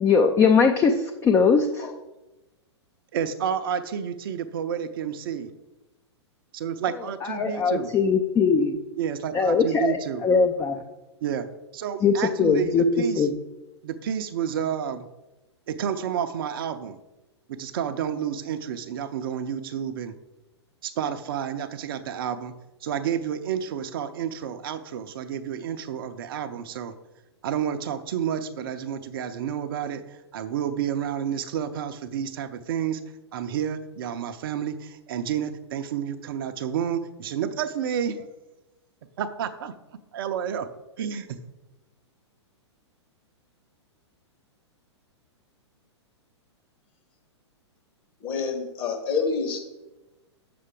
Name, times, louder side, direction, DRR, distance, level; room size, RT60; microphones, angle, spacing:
voice 1, 0.0-1.9 7.3-8.8 9.3-10.0 10.2-10.8 12.0-12.8 13.2-13.4, left 5 dB, 15° left, 6 dB, 0.5 m, -20 dB
voice 2, 3.1-5.5 6.5-7.9 9.0-10.2 11.2-11.5 11.7-13.3 13.8-15.1 15.7-17.0 17.5-20.1 20.8-22.5 22.8-26.9 27.4-30.0 30.3-33.0 33.3-38.3 39.2-39.7 40.1-40.7 41.0-41.4, right 8 dB, 50° right, 9 dB, 0.6 m, -30 dB
voice 3, 48.2-49.6, left 5 dB, 35° left, 3 dB, 1.4 m, -27 dB
7.8 x 6.7 x 3.8 m, 1.0 s
figure-of-eight pair, 110°, 15 cm